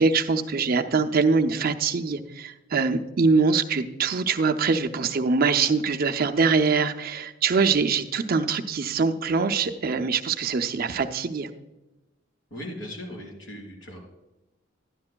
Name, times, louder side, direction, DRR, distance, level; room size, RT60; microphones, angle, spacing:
voice 1, 0.0-11.5, right 4 dB, 50° right, 6 dB, 0.6 m, -23 dB
voice 2, 12.5-14.0, left 1 dB, 80° left, -2 dB, 4.0 m, -38 dB
13.0 x 10.5 x 2.2 m, 1.0 s
head